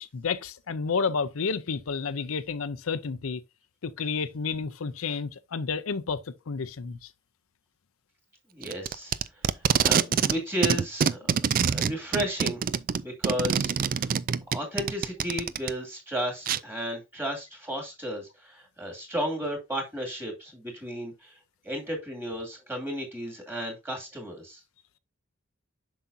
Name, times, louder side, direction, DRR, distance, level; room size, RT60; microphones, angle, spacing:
voice 1, 0.0-3.4 3.8-7.0, left 5 dB, 90° left, 0.6 m, -31 dB
voice 2, 8.5-9.1 9.8-11.2 11.7-12.6 13.0-14.1 14.5-21.3 21.6-24.6, equal, 10° right, 2.3 m, -33 dB
Packing tape duct tape, 8.6-10.4 10.6-15.7 16.5-16.6, right 7 dB, 40° right, 0.3 m, -25 dB
7.5 x 5.9 x 2.7 m
head